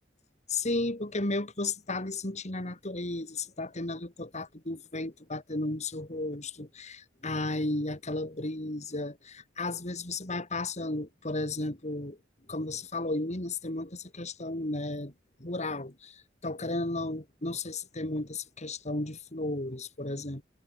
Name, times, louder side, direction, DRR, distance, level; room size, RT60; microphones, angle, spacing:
voice 1, 0.5-12.2 12.5-15.1 15.4-20.4, left 2 dB, 35° left, 3.5 m, -34 dB
head